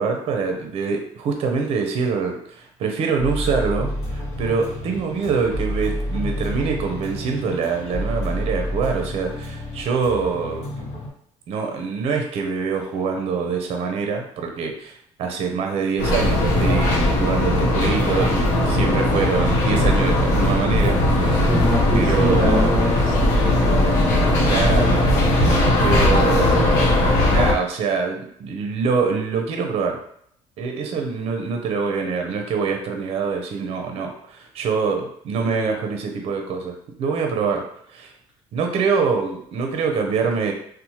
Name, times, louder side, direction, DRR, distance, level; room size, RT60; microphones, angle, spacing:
voice 1, 0.0-10.8 11.5-21.3 21.9-22.7 24.4-25.1 25.8-30.0 30.6-36.7 37.0-38.1 38.5-40.5, right 5 dB, 55° right, 4 dB, 0.5 m, -25 dB
sound 1, 3.2-11.1, equal, 60° left, 0.9 m, -29 dB
sound 2, 16.0-27.5, left 1 dB, 85° left, 0.6 m, -18 dB
voice 2, 21.4-23.7, equal, 5° right, -7 dB, 0.7 m, -24 dB
2.9 x 2.0 x 2.8 m, 0.67 s
cardioid pair, 125°, 12 cm